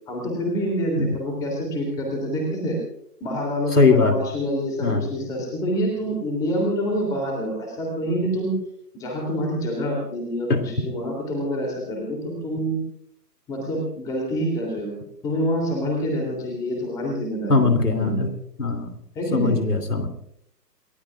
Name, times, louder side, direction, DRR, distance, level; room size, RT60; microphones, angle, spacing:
voice 1, 0.1-2.8 3.2-8.5 8.9-12.8 13.5-14.9 15.2-17.7 18.0-18.3 19.1-19.6, equal, 5° left, 0 dB, 3.1 m, -26 dB
voice 2, 3.7-4.2 4.8-5.0 10.5-10.6 17.5-18.3 18.6-18.9 19.3-20.1, left 3 dB, 65° left, 6 dB, 2.8 m, -20 dB
29.5 x 17.0 x 2.5 m, 0.73 s
figure-of-eight pair, 145°, 50 cm